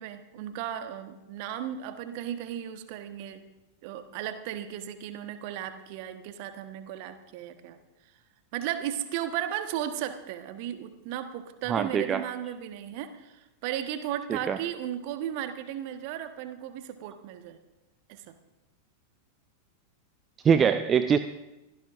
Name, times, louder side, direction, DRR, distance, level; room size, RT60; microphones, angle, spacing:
voice 1, 0.0-3.4 3.8-7.8 8.5-17.6 18.1-18.4, right 10 dB, 45° right, 9 dB, 1.3 m, -35 dB
voice 2, 11.7-12.2 14.3-14.6 20.4-21.2, right 7 dB, 25° right, 11 dB, 0.5 m, -23 dB
23.5 x 16.0 x 2.6 m, 0.99 s
figure-of-eight pair, 90°, 0 cm